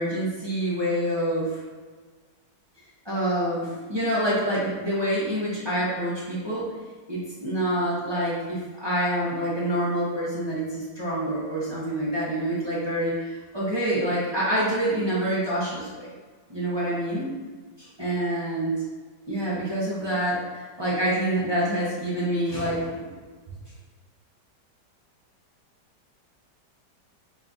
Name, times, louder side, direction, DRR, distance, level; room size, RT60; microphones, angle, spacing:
voice 1, 0.0-1.6 3.0-6.6 7.1-16.1 16.5-17.3 17.8-18.8 19.3-23.1, right 1 dB, 35° right, -9 dB, 0.4 m, -27 dB
4.1 x 2.4 x 3.8 m, 1.4 s
omnidirectional pair, 1.8 m